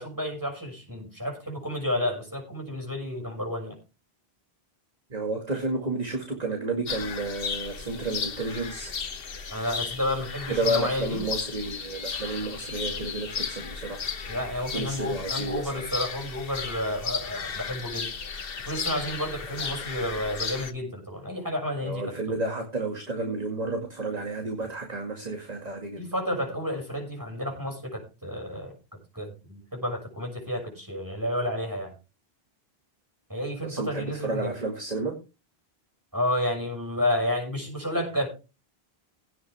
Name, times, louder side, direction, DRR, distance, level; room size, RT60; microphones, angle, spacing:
voice 1, 0.0-3.8 9.5-11.2 14.3-18.1 18.7-22.4 26.0-28.7 29.1-31.9 33.3-34.5 36.1-38.3, left 1 dB, 20° right, 1 dB, 6.5 m, -31 dB
voice 2, 5.1-8.9 10.5-14.0 14.7-15.8 19.5-19.6 20.0-20.2 21.8-26.0 33.6-35.1, right 2 dB, 40° right, 3 dB, 2.3 m, -31 dB
sound 1, 6.9-20.7, left 5 dB, 65° left, 1.3 m, -35 dB
17.0 x 9.2 x 3.5 m, 0.30 s
omnidirectional pair, 1.1 m